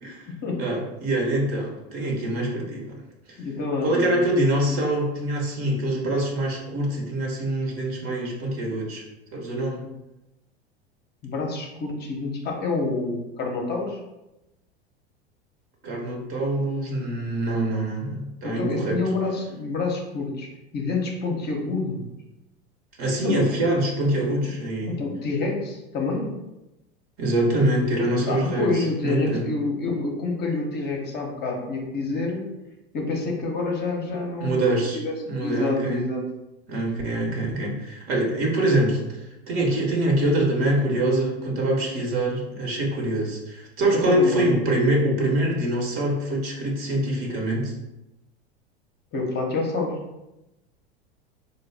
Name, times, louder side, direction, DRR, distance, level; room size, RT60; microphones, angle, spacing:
voice 1, 0.0-0.3 0.6-3.0 3.3-3.4 3.8-9.0 9.3-9.8 15.8-19.0 23.0-25.0 27.2-29.5 34.1-36.0 36.7-39.0 39.5-47.7, right 1 dB, 40° right, 0 dB, 1.1 m, -24 dB
voice 2, 3.4-4.1 11.2-14.0 18.4-20.5 20.7-22.1 23.2-23.5 24.9-26.3 28.2-32.5 32.9-35.1 35.4-36.2 43.9-44.4 49.1-50.0, left 3 dB, 30° left, 0 dB, 0.8 m, -27 dB
4.0 x 2.2 x 3.4 m, 0.95 s
hypercardioid pair, 90°, 32 cm